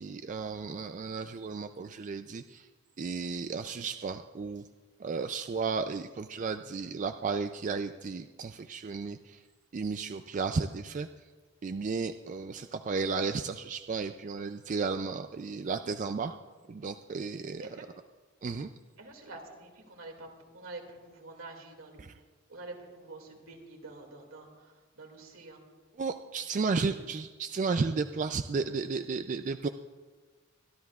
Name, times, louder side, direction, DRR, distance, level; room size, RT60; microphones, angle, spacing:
voice 1, 0.0-2.7 3.0-4.7 5.0-9.4 9.7-11.1 11.6-16.3 16.7-17.7 18.4-18.7 22.0-22.1 26.0-29.7, right 4 dB, 40° right, 8 dB, 0.3 m, -33 dB
voice 2, 19.0-20.3 20.5-22.0 22.5-25.6 26.6-27.0, right 2 dB, 80° right, 2 dB, 2.3 m, -47 dB
24.0 x 12.5 x 2.4 m, 1.4 s
head